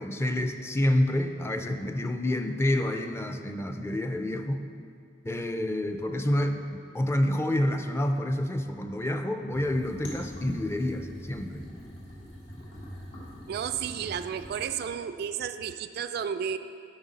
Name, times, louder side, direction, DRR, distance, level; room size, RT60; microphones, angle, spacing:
voice 1, 0.0-4.6 5.2-11.7, left 1 dB, 15° left, 6 dB, 0.4 m, -28 dB
sound 1, 9.5-14.7, equal, 75° left, 2.0 m, -43 dB
voice 2, 13.5-16.6, right 8 dB, 60° right, 11 dB, 0.3 m, -32 dB
11.0 x 5.7 x 4.1 m, 2.3 s
head